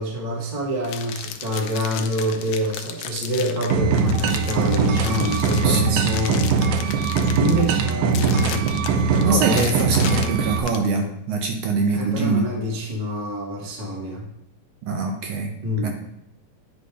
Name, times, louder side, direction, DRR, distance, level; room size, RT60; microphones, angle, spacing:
voice 1, 0.0-6.8 7.3-8.7 9.0-9.7 11.9-14.2 15.6-15.9, equal, 55° right, -2 dB, 0.4 m, -26 dB
sound 1, 0.8-10.9, left 8 dB, 80° left, 1.5 m, -34 dB
sound 2, 3.7-10.6, right 5 dB, 90° right, 2.1 m, -21 dB
voice 2, 5.6-6.0 9.2-12.5 14.8-15.5 15.8-15.9, right 4 dB, 70° right, 3 dB, 1.6 m, -23 dB
9.4 x 3.3 x 4.9 m, 0.80 s
omnidirectional pair, 3.5 m